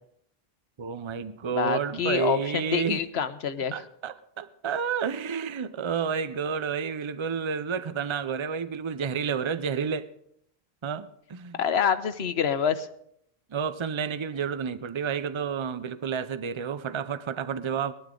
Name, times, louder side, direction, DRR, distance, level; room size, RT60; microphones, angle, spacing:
voice 1, 0.8-3.0 3.7-10.1 10.8-11.6 13.5-17.9, right 7 dB, 35° right, 13 dB, 0.6 m, -30 dB
voice 2, 1.5-2.4 2.7-3.7 11.6-12.9, left 7 dB, 90° left, 11 dB, 1.1 m, -26 dB
20.0 x 12.0 x 3.8 m, 0.71 s
omnidirectional pair, 1.0 m